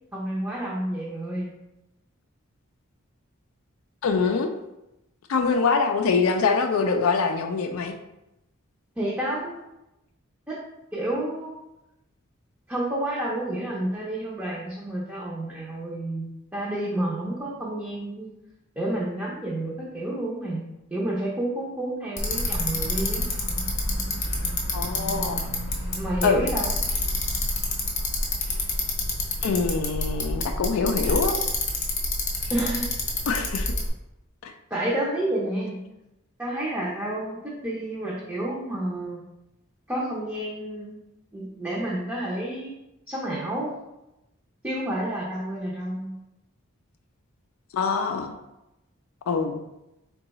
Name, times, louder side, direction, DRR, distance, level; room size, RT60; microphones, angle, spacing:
voice 1, 0.1-1.5 9.0-9.6 10.5-10.6 10.9-11.6 12.7-18.3 18.8-20.6 20.9-23.3 26.0-26.8 32.5-33.0 34.7-35.8 36.4-39.2 39.9-41.0 41.3-42.7 43.1-43.7 44.6-46.2, right 1 dB, 10° right, -7 dB, 0.5 m, -30 dB
voice 2, 4.0-4.5 5.3-8.0 24.7-25.5 26.2-26.4 29.4-31.4 33.3-33.7 34.4-34.5 47.7-48.3 49.3-49.6, left 4 dB, 75° left, 5 dB, 0.3 m, -24 dB
Bicycle, 22.2-33.9, left 2 dB, 35° left, 0.6 m, -28 dB
3.7 x 2.3 x 4.0 m, 0.91 s
head